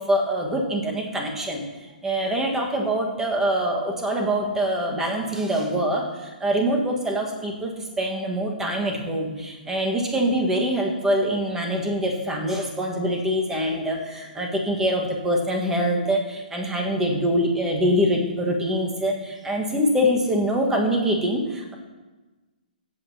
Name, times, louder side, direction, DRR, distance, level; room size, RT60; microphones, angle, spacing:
voice 1, 0.0-1.6 2.0-21.7, equal, 10° right, 0 dB, 1.5 m, -24 dB
15.0 x 7.7 x 2.8 m, 1.2 s
hypercardioid pair, 140°, 5 cm